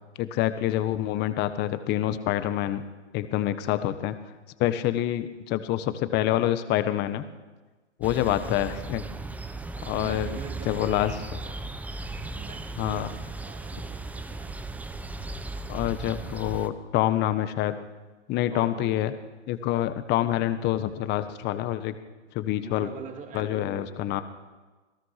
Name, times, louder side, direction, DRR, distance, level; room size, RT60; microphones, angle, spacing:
voice 1, 0.2-2.9 3.1-4.2 4.6-7.2 8.0-9.0 9.8-10.4 10.6-11.1 12.8-13.1 15.7-17.8 18.3-19.1 19.5-21.9 22.3-22.9 23.3-24.2, left 13 dB, 30° left, 12 dB, 1.3 m, -26 dB
sound 1, 8.0-16.7, right 2 dB, 5° right, 0.8 m, -37 dB
voice 2, 8.1-8.7 9.9-11.6 12.3-13.1 13.4-14.5 18.5-19.0 22.5-24.2, right 7 dB, 20° right, 4 dB, 2.8 m, -44 dB
27.0 x 18.5 x 5.9 m, 1.3 s
hypercardioid pair, 120°, 35 cm